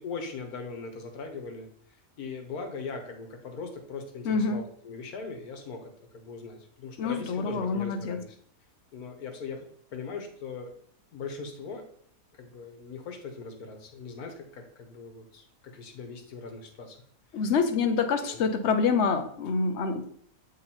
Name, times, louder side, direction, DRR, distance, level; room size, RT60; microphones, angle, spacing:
voice 1, 0.0-1.7 2.2-8.3 8.9-10.7 11.1-11.8 12.4-17.0 17.3-17.4 18.0-18.4, left 4 dB, 90° left, 4 dB, 1.6 m, -40 dB
voice 2, 4.2-4.6 7.0-8.2 17.3-20.1, left 5 dB, 55° left, 7 dB, 0.9 m, -26 dB
7.2 x 3.8 x 4.3 m, 0.62 s
omnidirectional pair, 1.5 m